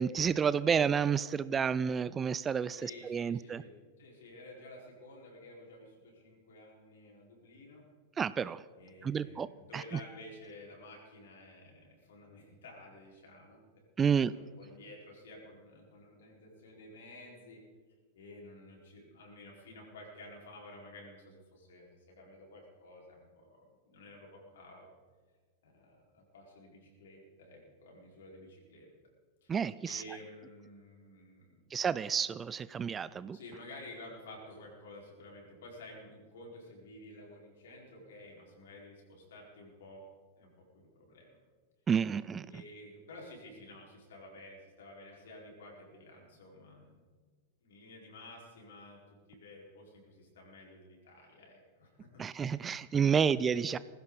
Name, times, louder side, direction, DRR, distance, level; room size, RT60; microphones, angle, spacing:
voice 1, 0.0-3.6 8.2-8.6 9.0-9.5 9.7-9.8 14.0-14.3 29.5-30.0 31.7-33.4 41.9-42.5 52.2-53.8, right 7 dB, 20° right, 17 dB, 0.4 m, -30 dB
voice 2, 2.7-7.8 8.8-13.6 14.0-17.6 18.1-24.9 25.6-28.9 29.4-29.6 29.8-31.6 33.3-40.0 40.4-41.3 42.5-46.9 47.6-49.0 49.3-52.7 53.0-53.5, left 1 dB, 60° left, -1 dB, 4.7 m, -52 dB
19.5 x 15.5 x 4.1 m, 1.5 s
figure-of-eight pair, 90°, 0 cm